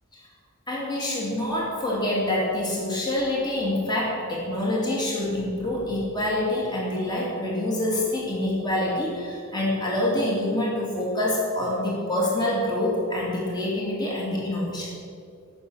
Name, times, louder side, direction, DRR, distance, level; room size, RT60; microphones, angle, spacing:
voice 1, 0.7-14.9, left 1 dB, 20° left, -5 dB, 2.6 m, -26 dB
15.0 x 7.0 x 6.3 m, 2.4 s
head